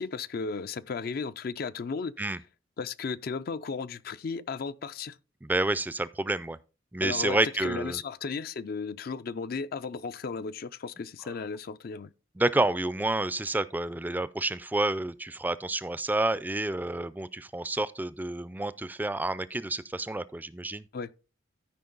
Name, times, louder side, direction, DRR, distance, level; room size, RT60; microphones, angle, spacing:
voice 1, 0.0-2.3 2.8-5.2 7.0-12.1 20.9-21.1, left 5 dB, 50° left, 0.4 m, -35 dB
voice 2, 5.4-6.6 6.9-8.0 12.4-20.8, right 2 dB, 10° right, 0.4 m, -29 dB
13.0 x 5.1 x 3.9 m
head